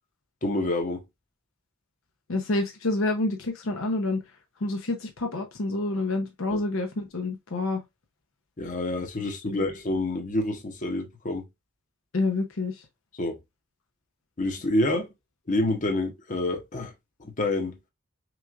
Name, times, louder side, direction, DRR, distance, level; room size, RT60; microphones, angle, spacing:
voice 1, 0.4-1.0 6.5-6.6 8.6-11.4 13.2-13.4 14.4-15.1 15.5-16.9 17.2-17.8, left 2 dB, 40° left, 0.9 m, -27 dB
voice 2, 2.3-4.2 4.6-7.8 9.5-9.7 12.1-12.7, left 2 dB, 70° left, 0.8 m, -28 dB
5.9 x 2.5 x 2.4 m
head